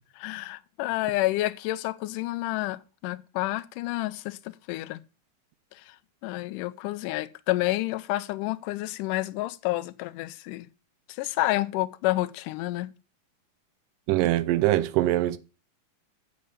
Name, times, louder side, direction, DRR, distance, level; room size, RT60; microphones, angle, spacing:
voice 1, 0.2-4.4 4.7-5.0 5.7-6.0 6.2-10.7 11.1-12.9, left 18 dB, 80° left, 2.0 m, -29 dB
voice 2, 14.1-15.4, right 15 dB, 80° right, 2.2 m, -23 dB
8.5 x 5.5 x 6.8 m
omnidirectional pair, 3.9 m